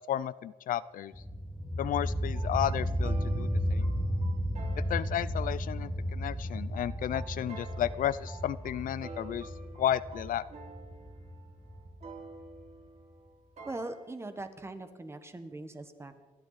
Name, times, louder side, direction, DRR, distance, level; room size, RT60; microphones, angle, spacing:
voice 1, 0.1-1.1 1.8-3.9 4.9-9.5 9.8-10.4, left 11 dB, 70° left, 17 dB, 0.5 m, -33 dB
sound 1, 1.1-12.7, equal, 10° left, 1.7 m, -34 dB
sound 2, 2.3-14.2, right 3 dB, 50° right, 2.8 m, -50 dB
voice 2, 13.6-16.2, right 2 dB, 15° right, 8 dB, 1.4 m, -41 dB
28.5 x 11.5 x 4.2 m, 1.3 s
cardioid pair, 130°, 15 cm